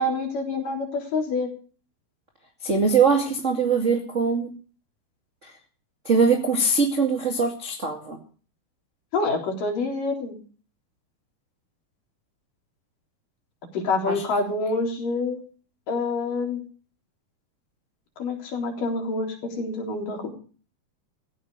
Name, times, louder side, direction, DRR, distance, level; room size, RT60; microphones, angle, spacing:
voice 1, 0.0-1.5 9.1-10.4 13.7-15.4 15.9-16.6 18.2-20.3, left 3 dB, 60° left, 2 dB, 5.2 m, -27 dB
voice 2, 2.6-4.5 6.0-8.2 14.1-14.2, right 4 dB, 25° right, 2 dB, 1.9 m, -22 dB
16.5 x 15.0 x 4.8 m, 0.40 s
omnidirectional pair, 4.5 m